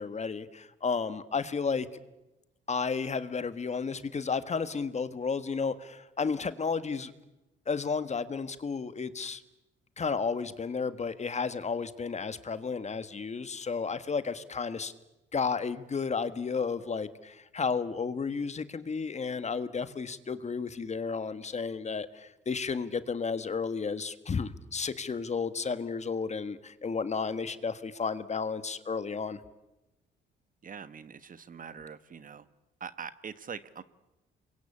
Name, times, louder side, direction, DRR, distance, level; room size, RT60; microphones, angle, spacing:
voice 1, 0.0-1.9 2.7-7.1 7.7-9.4 10.0-14.9 15.3-29.4, left 5 dB, 35° left, 13 dB, 1.6 m, -32 dB
voice 2, 30.6-32.4 32.8-33.8, right 6 dB, 45° right, 14 dB, 1.3 m, -43 dB
28.0 x 23.0 x 8.5 m, 0.96 s
cardioid pair, 90°, 20 cm